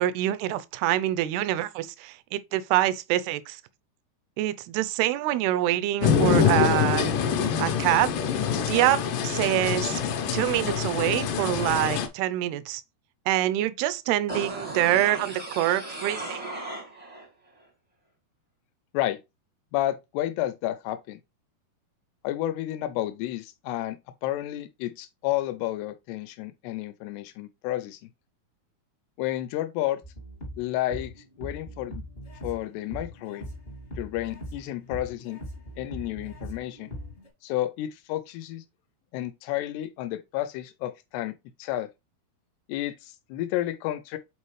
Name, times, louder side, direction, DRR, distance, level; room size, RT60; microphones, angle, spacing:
voice 1, 0.0-3.6 4.4-7.2 7.6-8.1 8.6-9.0 9.2-10.0 10.3-12.8 13.3-16.4, right 14 dB, 85° right, 2.6 m, -25 dB
sound 1, 6.0-12.1, left 7 dB, 70° left, 2.1 m, -25 dB
sound 2, 14.3-17.3 17.6-17.7, right 2 dB, 45° right, 0.4 m, -36 dB
voice 2, 19.7-21.2 22.2-28.1 29.2-30.0 30.6-31.1 31.4-32.0 32.4-33.5 34.0-35.4 35.8-36.9 37.4-38.6 39.1-41.3 41.6-41.9 42.7-44.2, left 14 dB, 90° left, 2.7 m, -31 dB
sound 3, 30.0-37.3, equal, 40° left, 0.8 m, -41 dB
8.0 x 4.2 x 3.2 m
omnidirectional pair, 4.6 m